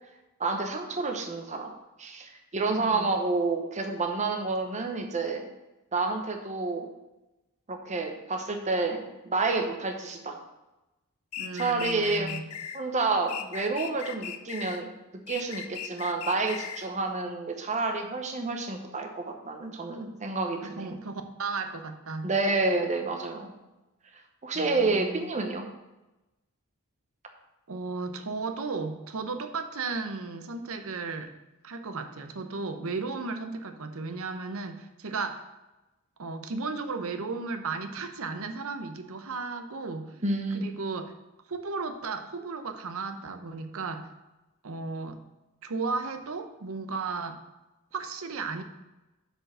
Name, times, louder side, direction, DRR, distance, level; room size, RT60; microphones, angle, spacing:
voice 1, 0.4-1.7 2.0-5.5 5.9-6.9 7.7-10.4 11.5-12.3 12.7-21.0 22.2-23.6 24.1-25.7 40.2-40.6, right 3 dB, 30° right, 4 dB, 0.9 m, -29 dB
voice 2, 2.7-3.2 11.4-12.5 20.6-22.3 24.5-25.3 27.7-31.3 31.6-35.4 36.2-40.2 40.5-41.1 41.5-44.1 44.6-45.2 45.6-47.4 47.9-48.6, right 4 dB, 65° right, 7 dB, 0.8 m, -35 dB
sound 1, 11.3-12.8 13.3-14.8 15.3-16.9, left 9 dB, 75° left, 0.6 m, -38 dB
6.3 x 5.2 x 6.2 m, 1.0 s
head